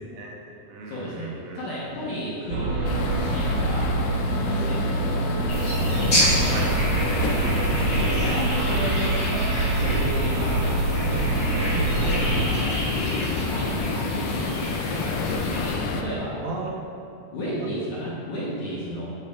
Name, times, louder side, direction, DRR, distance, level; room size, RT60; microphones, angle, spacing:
voice 1, 0.1-1.6 6.5-6.8 7.3-7.5 16.4-16.8 17.5-17.9, right 3 dB, 85° right, 0 dB, 2.8 m, -36 dB
voice 2, 0.9-3.9 4.2-5.4 5.9-6.5 7.9-9.4 9.7-10.6 11.5-14.3 14.9-15.2 15.9-16.4 17.3-19.1, equal, 70° left, -7 dB, 1.9 m, -32 dB
sound 1, 2.5-12.4, right 3 dB, 70° right, 1.9 m, -25 dB
sound 2, 2.9-16.0, left 4 dB, 85° left, 2.6 m, -29 dB
sound 3, 5.5-15.7, equal, 40° left, 1.1 m, -30 dB
10.5 x 4.7 x 3.5 m, 2.7 s
omnidirectional pair, 4.6 m